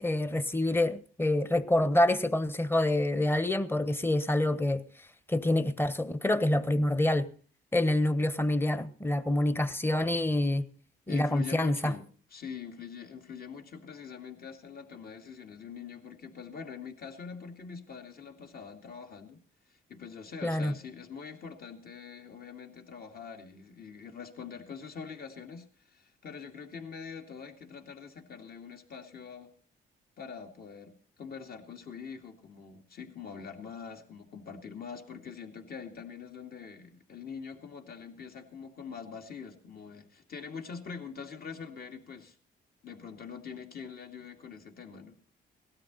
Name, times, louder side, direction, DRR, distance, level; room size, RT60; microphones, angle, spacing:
voice 1, 0.0-4.8 5.3-7.3 7.7-10.7 11.1-11.9 20.4-20.7, left 1 dB, 10° left, 13 dB, 1.1 m, -27 dB
voice 2, 11.1-12.0 12.3-19.4 19.9-29.5 30.2-42.4 42.8-45.3, left 6 dB, 50° left, 3 dB, 2.5 m, -44 dB
18.5 x 12.5 x 4.1 m, 0.41 s
cardioid pair, 90°, 20 cm